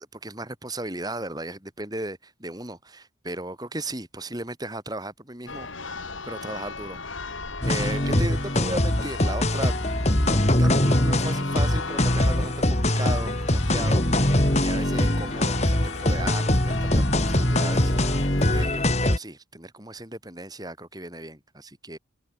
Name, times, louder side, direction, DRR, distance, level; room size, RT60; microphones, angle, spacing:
voice 1, 0.1-7.0 7.6-9.8 10.3-22.0, right 1 dB, 20° right, 5.0 m, -36 dB
Church bell, 5.5-18.7, left 4 dB, 85° left, 4.7 m, -37 dB
sound 1, 7.6-19.2, left 1 dB, 35° left, 3.0 m, -22 dB
head